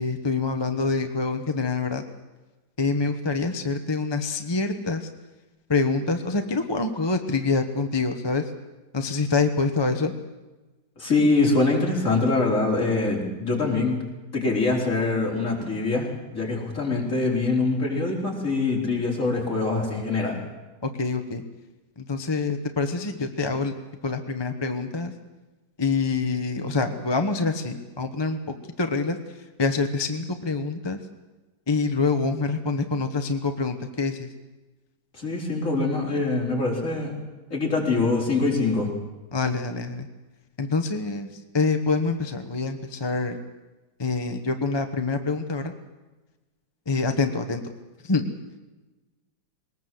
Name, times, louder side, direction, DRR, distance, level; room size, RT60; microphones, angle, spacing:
voice 1, 0.0-2.0 2.8-5.1 5.7-8.4 8.9-10.1 21.0-21.4 22.1-23.7 24.0-25.1 25.8-28.4 28.8-29.2 29.6-31.0 31.7-34.3 39.3-40.1 40.6-41.3 41.5-43.4 44.0-45.7 46.9-47.6 48.1-48.2, left 4 dB, 20° left, 6 dB, 0.8 m, -26 dB
voice 2, 11.0-14.0 14.3-16.1 16.3-20.4 35.1-37.2 37.5-38.9, left 3 dB, 40° left, -2 dB, 4.9 m, -24 dB
21.0 x 19.5 x 7.9 m, 1.2 s
omnidirectional pair, 2.1 m